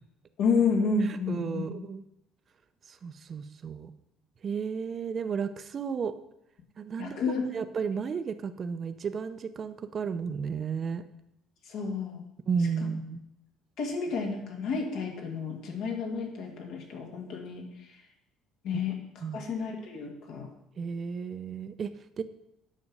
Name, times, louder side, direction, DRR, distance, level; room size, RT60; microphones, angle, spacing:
voice 1, 0.4-1.8 7.0-7.5 11.7-12.2 13.8-17.7 18.6-18.9 19.3-20.5, left 4 dB, 70° left, 1 dB, 2.0 m, -30 dB
voice 2, 1.1-2.0 2.9-3.9 4.4-6.2 6.8-7.2 7.5-11.0 12.5-13.2 19.2-19.4 20.8-22.2, right 6 dB, 35° right, 10 dB, 0.6 m, -33 dB
9.7 x 6.1 x 5.5 m, 0.82 s
cardioid pair, 120°, 0 cm